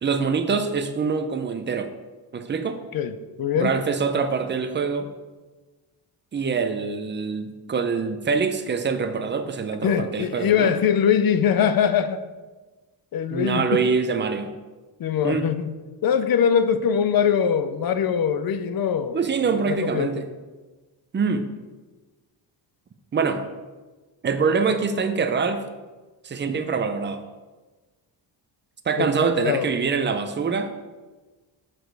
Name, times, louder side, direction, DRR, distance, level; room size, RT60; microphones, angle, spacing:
voice 1, 0.0-1.9 2.3-2.8 3.5-5.1 6.3-10.7 13.3-14.5 15.2-15.5 19.1-20.3 21.1-21.5 23.1-23.4 24.2-25.6 26.2-27.2 28.9-30.7, right 5 dB, 25° right, 8 dB, 0.5 m, -24 dB
voice 2, 2.9-3.8 9.8-12.2 13.1-13.9 15.0-15.7 16.0-19.2 19.7-20.1 29.0-29.7, left 7 dB, 50° left, 11 dB, 0.5 m, -22 dB
6.1 x 5.1 x 4.6 m, 1.3 s
wide cardioid pair, 140°, 45 cm